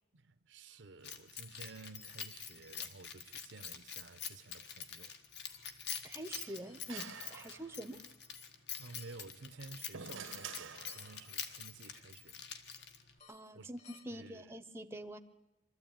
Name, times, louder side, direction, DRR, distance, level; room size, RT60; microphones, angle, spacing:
voice 1, 0.1-5.2 8.8-12.5 13.5-13.7 14.1-14.5, right 3 dB, 65° right, 0.8 m, -53 dB
sound 1, 0.7-1.2 2.5-2.6 3.2-3.3 5.5-6.4 6.6-7.2 8.9-9.1 10.7-11.4 11.7-12.4 12.7-14.0, left 5 dB, 35° left, 1.8 m, -64 dB
Keys jangling, 1.0-13.2, left 7 dB, 55° left, 1.5 m, -46 dB
voice 2, 6.0-8.0 13.3-15.2, right 1 dB, 10° right, 0.8 m, -46 dB
sound 2, 6.3-8.0 9.4-11.4, right 6 dB, 80° right, 1.1 m, -49 dB
24.0 x 13.5 x 9.0 m
head